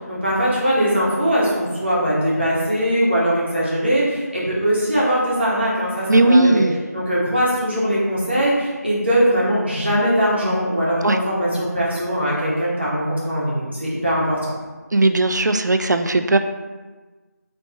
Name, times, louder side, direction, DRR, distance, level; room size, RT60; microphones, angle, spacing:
voice 1, 0.1-6.6 6.9-14.5, equal, 40° right, -7 dB, 1.1 m, -21 dB
voice 2, 6.1-6.8 11.0-11.2 14.9-16.4, right 2 dB, 85° right, 7 dB, 0.4 m, -17 dB
3.1 x 2.9 x 4.2 m, 1.3 s
figure-of-eight pair, 175°, 9 cm